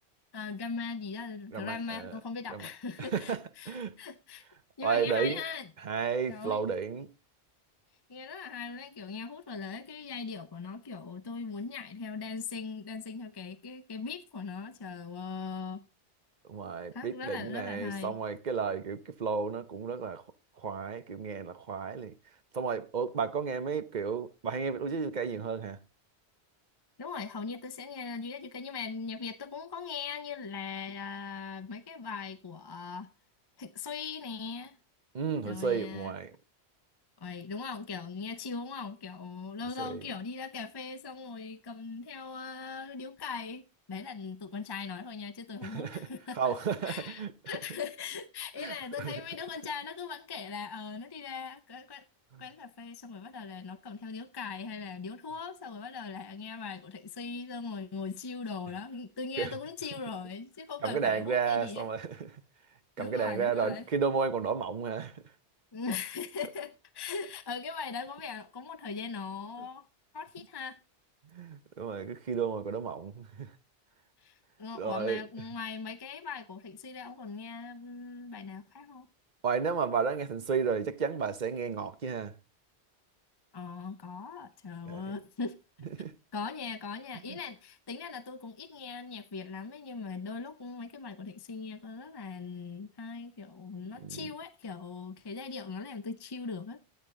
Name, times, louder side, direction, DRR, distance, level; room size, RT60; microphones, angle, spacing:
voice 1, 0.3-4.4 4.8-5.7 6.3-6.6 8.1-15.8 16.9-18.2 27.0-33.1 33.6-34.8 35.4-36.1 37.2-46.5 46.8-52.1 52.4-61.9 63.0-63.9 65.7-69.9 70.1-70.8 74.2-79.1 83.5-85.6 86.3-96.8, left 5 dB, 30° left, 0.4 m, -40 dB
voice 2, 1.5-2.1 2.5-2.7 3.0-3.4 3.7-3.9 4.8-5.4 5.8-7.1 16.5-20.2 20.6-22.1 22.5-25.8 35.1-36.3 39.8-40.0 45.6-46.1 46.4-47.3 48.6-49.1 52.3-52.4 59.4-59.6 60.8-62.4 63.0-65.2 71.3-73.5 74.8-75.2 79.4-82.3 84.9-85.0 86.0-86.1 87.3-87.4 94.0-94.3, right 6 dB, 45° right, 0.9 m, -32 dB
13.0 x 8.8 x 3.7 m
omnidirectional pair, 1.1 m